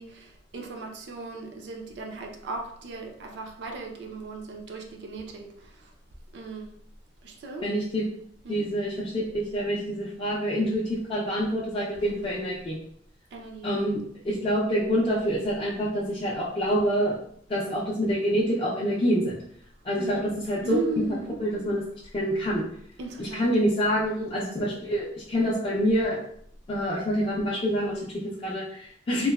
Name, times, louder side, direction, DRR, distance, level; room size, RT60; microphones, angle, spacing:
voice 1, 0.0-5.9 6.3-6.7 7.2-7.7 8.4-8.6 13.3-13.7 19.9-20.3 20.6-21.4 23.0-23.5, right 2 dB, 65° right, 0.4 m, -36 dB
voice 2, 7.6-8.0 8.5-12.8 13.6-14.0 14.2-17.2 17.5-19.4 19.8-20.8 21.4-21.8 22.1-22.6 23.2-26.2 26.7-29.3, equal, 30° left, 0.4 m, -26 dB
3.0 x 2.0 x 2.2 m
head